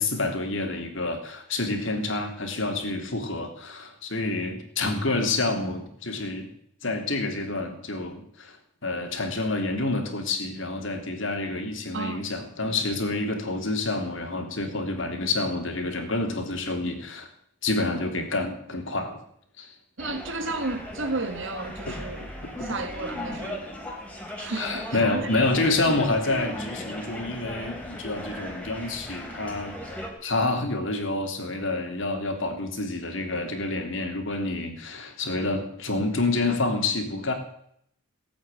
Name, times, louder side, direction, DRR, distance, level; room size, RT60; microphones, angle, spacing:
voice 1, 0.0-6.5 6.8-8.6 8.8-17.3 17.6-19.2 19.6-19.7 21.9-22.0 22.6-22.7 24.5-29.7 30.2-37.3, left 2 dB, 60° left, 4 dB, 3.2 m, -28 dB
sound 1, 20.0-30.1, equal, 5° left, 3.4 m, -37 dB
voice 2, 20.0-22.3 22.6-23.7 24.4-25.3 25.7-25.8, right 3 dB, 60° right, 8 dB, 1.9 m, -33 dB
18.5 x 8.6 x 9.1 m, 0.70 s
head